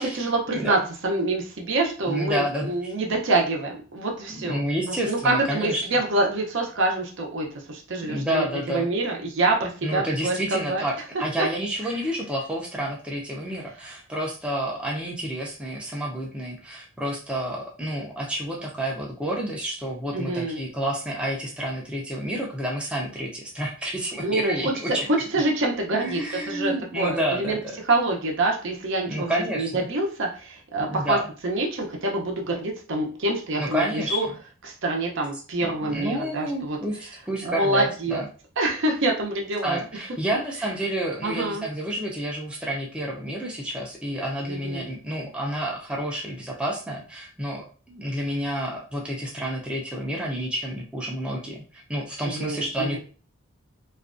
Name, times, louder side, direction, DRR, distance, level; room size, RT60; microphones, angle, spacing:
voice 1, 0.0-4.6 5.1-10.8 11.4-11.5 20.1-20.6 24.2-24.7 25.1-27.6 27.8-31.2 31.4-34.3 34.6-36.8 37.4-38.2 38.6-39.8 41.2-41.7 44.5-44.9 52.2-53.0, right 2 dB, 60° right, 0 dB, 0.6 m, -26 dB
voice 2, 2.1-2.9 4.3-5.9 8.1-8.9 9.8-25.1 26.0-27.6 29.1-29.9 30.9-31.3 33.6-34.3 35.9-38.3 39.6-53.0, right 1 dB, 5° right, -3 dB, 0.4 m, -29 dB
2.4 x 2.2 x 2.4 m, 0.39 s
head